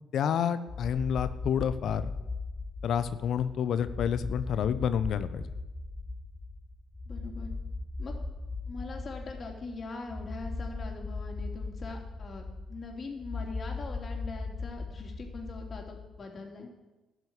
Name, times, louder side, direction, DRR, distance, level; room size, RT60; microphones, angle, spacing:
voice 1, 0.1-2.0 2.8-5.5, left 8 dB, 65° left, 12 dB, 0.8 m, -29 dB
sound 1, 0.7-16.2, left 3 dB, 25° left, 0.9 m, -38 dB
voice 2, 7.1-7.5 8.0-8.2 8.7-16.7, left 3 dB, 45° left, 1 dB, 3.2 m, -42 dB
13.5 x 6.2 x 9.5 m, 1.1 s
hypercardioid pair, 50°, 0 cm